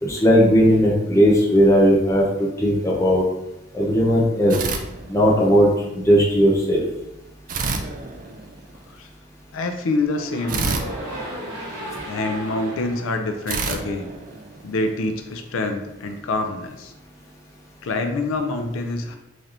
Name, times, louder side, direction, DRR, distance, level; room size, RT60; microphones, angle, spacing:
voice 1, 0.0-3.2 3.7-4.6 5.1-6.8, equal, 15° left, -4 dB, 0.7 m, -17 dB
sound 1, 4.5-5.6 7.5-8.9 10.5-12.2 13.5-15.0, right 4 dB, 40° right, 0.3 m, -29 dB
voice 2, 9.5-10.8 12.0-14.1 14.6-16.9 17.8-19.2, left 2 dB, 85° left, 6 dB, 0.4 m, -26 dB
sound 2, 10.1-14.3, equal, 20° right, 1.5 m, -36 dB
4.0 x 3.3 x 2.5 m, 0.88 s
head